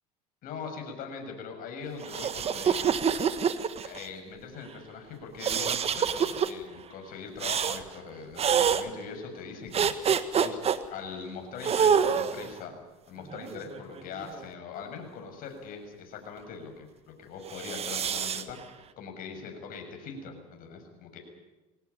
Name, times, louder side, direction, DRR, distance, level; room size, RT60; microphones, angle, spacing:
voice 1, 0.4-3.0 3.8-10.6 10.9-12.7 13.1-21.2, left 5 dB, 55° left, 4 dB, 7.0 m, -41 dB
sound 1, 2.0-4.1 5.4-6.5 7.4-7.8 8.4-8.8 9.7-10.8 11.6-12.5 13.3-14.4 17.5-18.4, right 7 dB, 35° right, 1.5 m, -26 dB
22.0 x 17.5 x 10.0 m, 1.1 s
supercardioid pair, 90°, 17 cm